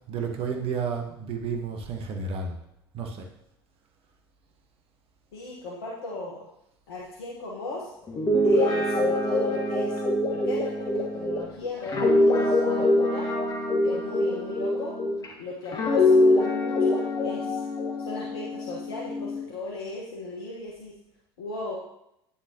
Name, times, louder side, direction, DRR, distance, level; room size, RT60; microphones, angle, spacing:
voice 1, 0.1-2.5 2.9-3.2, right 5 dB, 45° right, 3 dB, 1.4 m, -31 dB
voice 2, 5.3-6.4 6.9-7.9 8.4-10.0 10.3-13.3 13.8-15.0 15.4-17.6 18.0-20.9 21.4-21.8, left 2 dB, 70° left, -4 dB, 1.4 m, -37 dB
Guitar, 8.1-15.3 15.7-19.4, left 1 dB, 30° left, 1.8 m, -24 dB
9.6 x 7.2 x 3.0 m, 0.80 s
figure-of-eight pair, 70°, 13 cm